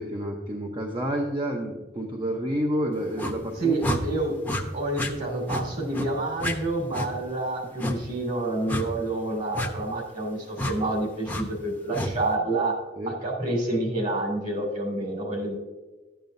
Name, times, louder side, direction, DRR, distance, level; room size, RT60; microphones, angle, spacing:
voice 1, 0.0-4.0 13.0-13.1, equal, 30° right, 0 dB, 0.8 m, -29 dB
sound 1, 3.2-3.4 3.8-4.0 4.4-4.6 4.9-5.1 5.5-5.6 5.9-6.1 6.4-6.5 6.9-7.1 7.8-8.0 8.7-8.9 9.5-9.7 10.6-10.7 11.3-11.4 11.9-12.1, left 1 dB, 10° left, 0.8 m, -29 dB
voice 2, 3.5-4.3 4.7-12.8 13.1-15.5, right 2 dB, 50° right, 0 dB, 2.7 m, -28 dB
12.0 x 8.9 x 2.6 m, 1.3 s
head